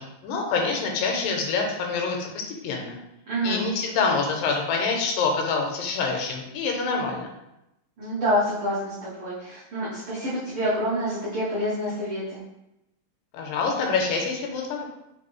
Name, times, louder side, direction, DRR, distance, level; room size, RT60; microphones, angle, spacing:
voice 1, 0.0-2.3 2.6-3.0 3.4-7.3 13.3-14.9, left 4 dB, 85° left, 1 dB, 2.3 m, -26 dB
voice 2, 3.3-3.6 8.0-12.4, equal, 80° right, -10 dB, 1.2 m, -27 dB
5.4 x 2.6 x 3.0 m, 0.88 s
omnidirectional pair, 3.9 m